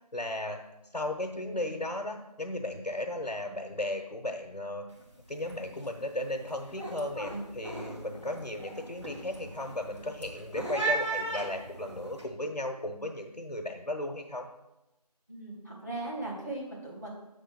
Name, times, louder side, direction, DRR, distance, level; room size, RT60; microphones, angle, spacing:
voice 1, 0.1-0.6 0.9-4.8 5.3-7.3 7.6-14.5, left 1 dB, 85° left, 2 dB, 1.0 m, -35 dB
sound 1, 4.9-5.2 5.4-5.9 6.3-12.2, right 3 dB, 45° right, 1.7 m, -37 dB
voice 2, 7.1-7.4 15.3-17.1, right 2 dB, 25° right, -5 dB, 1.4 m, -38 dB
7.3 x 3.4 x 5.9 m, 0.96 s
figure-of-eight pair, 180°, 21 cm